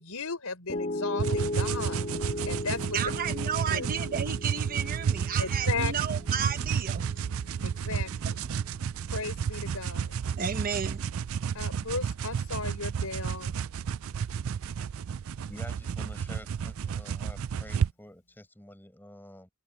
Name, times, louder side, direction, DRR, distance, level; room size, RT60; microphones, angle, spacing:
voice 1, 0.0-2.1 2.5-3.0 3.7-3.9 5.4-5.9 7.6-8.4 9.1-10.1 11.5-13.5, left 4 dB, 75° left, 4.2 m, -35 dB
Piano, 0.7-12.9, left 1 dB, 35° left, 3.7 m, -38 dB
sound 1, 1.2-17.9, right 7 dB, 65° right, 0.4 m, -31 dB
voice 2, 2.9-7.0 10.3-11.0, right 7 dB, 40° right, 1.0 m, -32 dB
voice 3, 15.5-19.5, left 1 dB, 10° left, 7.2 m, -48 dB
head